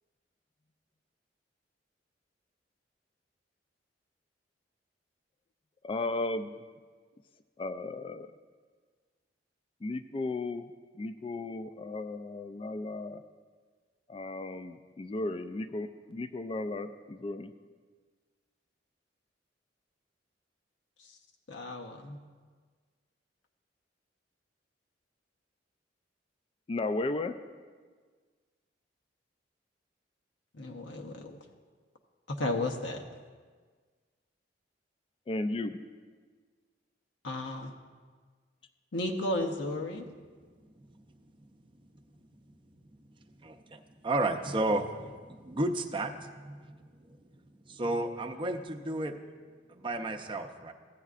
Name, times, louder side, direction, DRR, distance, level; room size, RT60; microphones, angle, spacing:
voice 1, 5.8-6.5 7.6-8.3 9.8-10.6 11.0-13.2 14.1-17.5 26.7-27.3 35.3-35.8, left 2 dB, 30° left, 10 dB, 0.3 m, -35 dB
voice 2, 21.5-22.2 30.5-31.4 32.3-33.0 37.2-37.7 38.9-40.1, left 1 dB, 85° left, 1 dB, 0.7 m, -34 dB
voice 3, 43.4-49.2 49.7-50.7, right 2 dB, 30° right, 5 dB, 0.6 m, -33 dB
15.0 x 9.1 x 2.4 m, 1.5 s
head